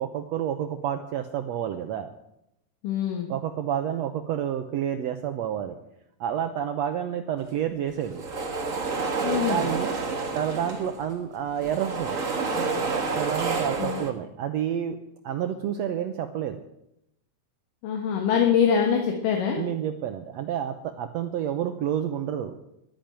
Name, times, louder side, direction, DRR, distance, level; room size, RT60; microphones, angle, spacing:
voice 1, 0.0-2.1 3.3-5.8 6.2-8.2 9.5-9.9 10.3-12.2 13.1-15.0 15.2-16.6 19.6-22.5, right 9 dB, 75° right, 8 dB, 1.6 m, -29 dB
voice 2, 2.8-3.3 9.2-9.7 13.8-14.0 17.8-19.6, left 7 dB, 80° left, 2 dB, 3.1 m, -24 dB
sound 1, 7.9-11.1 11.4-14.1, right 4 dB, 40° right, 1.2 m, -29 dB
12.0 x 10.5 x 8.9 m, 0.84 s
omnidirectional pair, 3.8 m